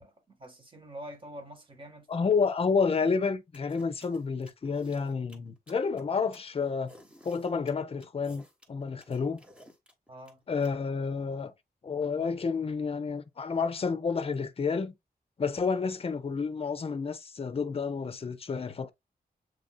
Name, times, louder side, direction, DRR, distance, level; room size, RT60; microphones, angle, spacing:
voice 1, 0.0-2.3 10.1-10.4, equal, 35° right, 1.5 m, -46 dB
voice 2, 2.1-6.9 7.2-9.4 10.5-11.5 11.8-15.0 15.4-18.9, left 5 dB, 40° left, 0.6 m, -30 dB
sound 1, 3.5-10.7, equal, 5° right, 1.1 m, -55 dB
7.8 x 2.6 x 2.2 m
wide cardioid pair, 115°, 16 cm